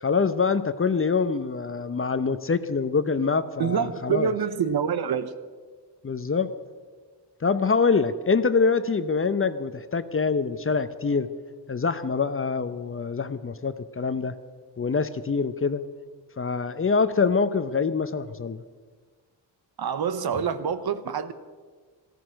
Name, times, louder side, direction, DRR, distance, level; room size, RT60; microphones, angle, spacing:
voice 1, 0.0-4.3 6.0-6.6 7.4-11.3 11.7-14.3 14.8-15.8 16.4-18.6, left 5 dB, 30° left, 12 dB, 0.8 m, -25 dB
voice 2, 3.6-5.3 19.8-21.3, right 7 dB, 55° right, 13 dB, 1.1 m, -26 dB
14.0 x 14.0 x 6.4 m, 1.5 s
cardioid pair, 70°, 44 cm